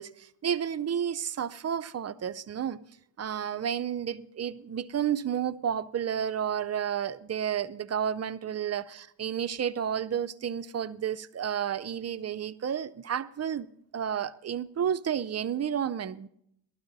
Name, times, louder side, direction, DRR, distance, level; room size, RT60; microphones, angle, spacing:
voice 1, 0.0-2.8 3.2-13.7 13.9-16.3, right 8 dB, 35° right, 0.5 m, -31 dB
18.5 x 13.0 x 4.0 m
cardioid pair, 100°, 44 cm